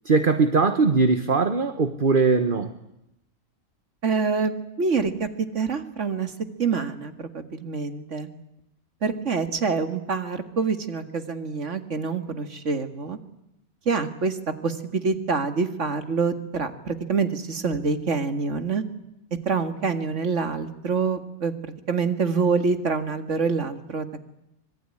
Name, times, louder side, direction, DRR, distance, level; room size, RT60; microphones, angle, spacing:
voice 1, 0.0-2.7, right 4 dB, 40° right, 9 dB, 1.4 m, -20 dB
voice 2, 4.0-5.3 5.5-6.3 6.6-8.3 9.0-13.2 13.9-14.4 14.6-18.8 19.5-21.5 21.9-24.1, right 5 dB, 60° right, 9 dB, 2.3 m, -26 dB
25.5 x 22.0 x 9.9 m, 0.85 s
omnidirectional pair, 1.5 m